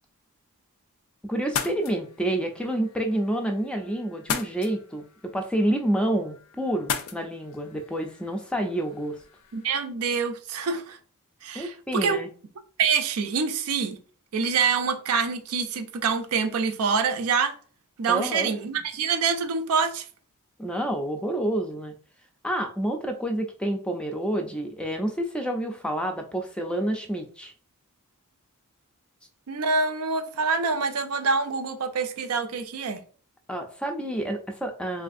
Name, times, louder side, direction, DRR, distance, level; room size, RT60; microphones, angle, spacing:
voice 1, 1.2-5.1 5.3-9.2 11.5-12.3 18.1-18.5 20.6-21.9 22.4-27.5 33.5-35.0, right 1 dB, 5° left, 0.4 m, -28 dB
sound 1, 1.4-9.8, left 7 dB, 80° left, 0.4 m, -38 dB
voice 2, 9.5-11.0 11.4-12.2 12.8-14.0 14.3-17.5 18.0-20.1 29.5-33.0, right 5 dB, 80° right, 0.4 m, -26 dB
3.3 x 2.5 x 2.5 m
head